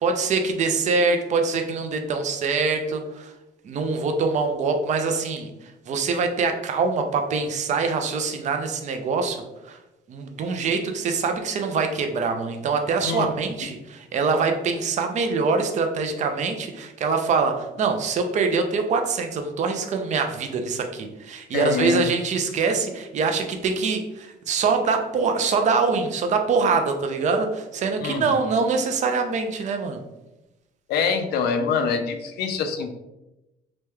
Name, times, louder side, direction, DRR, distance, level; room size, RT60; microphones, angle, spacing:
voice 1, 0.0-3.3 3.6-9.8 10.1-30.0, right 4 dB, 45° right, 5 dB, 0.5 m, -24 dB
voice 2, 21.5-22.0 28.0-28.2 30.9-32.9, left 6 dB, 70° left, 7 dB, 0.5 m, -25 dB
3.0 x 2.2 x 3.3 m, 0.96 s
cardioid pair, 110°, 17 cm